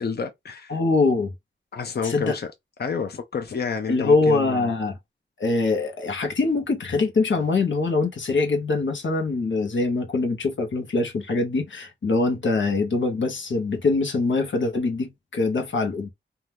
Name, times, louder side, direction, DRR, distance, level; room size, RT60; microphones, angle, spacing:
voice 1, 0.0-0.8 1.7-2.5 2.8-4.7, left 5 dB, 60° left, 0.5 m, -29 dB
voice 2, 0.7-1.3 2.0-2.4 3.9-5.0 5.4-16.1, left 3 dB, 90° left, 0.8 m, -23 dB
2.7 x 2.3 x 3.3 m
wide cardioid pair, 65°, 19 cm